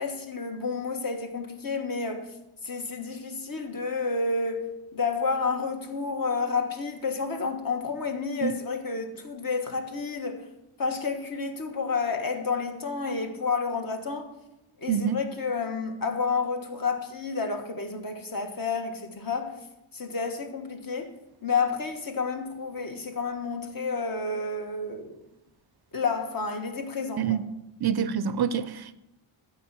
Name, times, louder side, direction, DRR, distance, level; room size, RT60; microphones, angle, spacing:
voice 1, 0.0-2.3 2.6-10.5 10.8-14.3 14.8-19.5 19.9-21.1 21.4-25.2 25.9-27.4, left 4 dB, 45° left, 1.4 m, -30 dB
voice 2, 14.9-15.2 27.2-27.4 27.8-28.9, right 8 dB, 50° right, 0.5 m, -26 dB
13.0 x 4.4 x 7.4 m
wide cardioid pair, 125°, 49 cm